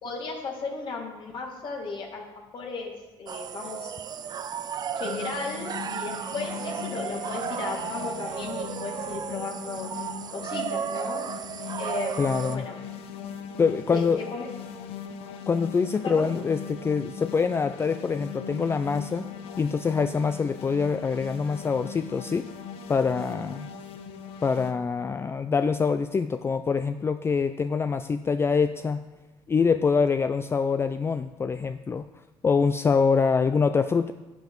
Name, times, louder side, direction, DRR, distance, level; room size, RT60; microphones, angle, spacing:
voice 1, 0.0-3.9 5.0-9.9 10.3-11.2 11.8-12.8 13.9-14.5 16.0-16.3, left 4 dB, 55° left, 0 dB, 1.9 m, -35 dB
sound 1, 3.3-12.6, right 7 dB, 45° right, 0.5 m, -34 dB
sound 2, 5.0-24.7, left 7 dB, 75° left, 0.8 m, -40 dB
voice 2, 12.2-12.6 13.6-14.2 15.5-19.2 19.6-22.5 22.9-23.7 24.4-29.0 29.5-32.0 32.4-34.1, left 5 dB, 25° left, 10 dB, 0.4 m, -25 dB
11.5 x 7.1 x 3.8 m, 1.1 s
supercardioid pair, 80°, 10 cm